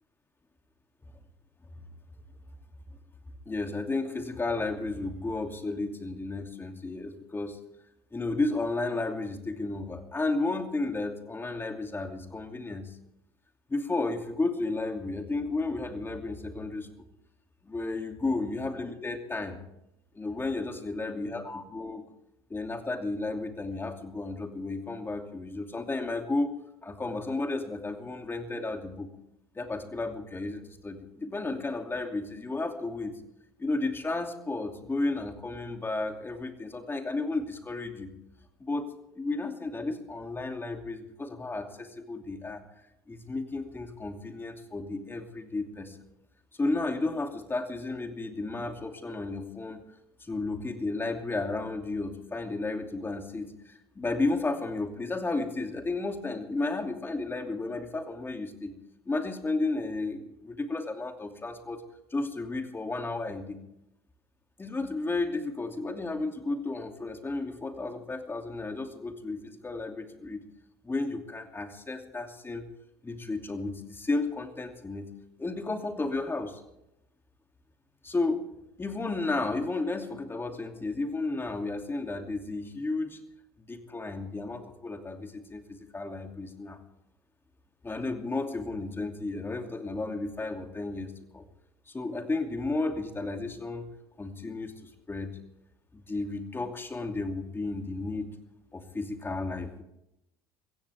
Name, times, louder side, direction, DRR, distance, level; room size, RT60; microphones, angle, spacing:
voice 1, 3.5-7.6 8.1-12.9 13.7-16.9 17.6-19.6 20.1-22.0 22.5-26.5 26.8-29.1 29.5-33.1 33.6-38.1 38.6-38.9 39.2-42.6 43.1-46.0 46.6-49.8 50.2-58.7 59.1-61.8 62.1-63.6 64.6-70.4 70.8-72.7 73.0-75.1 75.4-76.6 78.0-78.4 78.8-83.2 83.6-86.8 87.8-91.5 91.9-93.9 94.2-94.7 95.1-95.3 95.9-98.3 98.7-99.8, left 3 dB, 20° left, 5 dB, 2.7 m, -33 dB
22.5 x 16.0 x 3.6 m, 0.85 s
hypercardioid pair, 75°, 12 cm